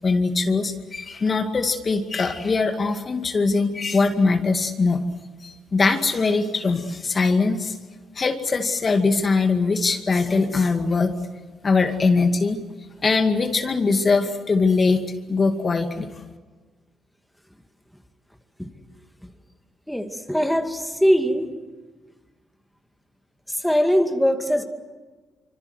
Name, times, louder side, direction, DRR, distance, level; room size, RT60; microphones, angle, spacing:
voice 1, 0.0-5.0 5.4-7.8 8.2-11.1 11.6-12.6 13.0-16.1, left 4 dB, 35° left, 5 dB, 2.2 m, -21 dB
voice 2, 19.9-21.5 23.5-24.6, equal, ahead, 4 dB, 2.3 m, -22 dB
25.5 x 25.5 x 8.0 m, 1.3 s
cardioid pair, 90°, 0 cm